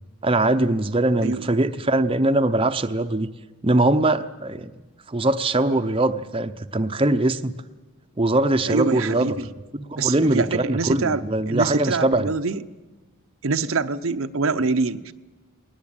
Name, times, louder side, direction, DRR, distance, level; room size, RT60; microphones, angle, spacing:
voice 1, 0.2-3.3 3.6-4.7 5.1-7.5 8.2-9.3 9.7-12.3, right 2 dB, 25° right, 8 dB, 0.7 m, -21 dB
voice 2, 8.6-9.5 10.0-12.6 13.4-15.1, right 4 dB, 60° right, 10 dB, 0.7 m, -25 dB
20.0 x 19.0 x 8.9 m, 1.2 s
head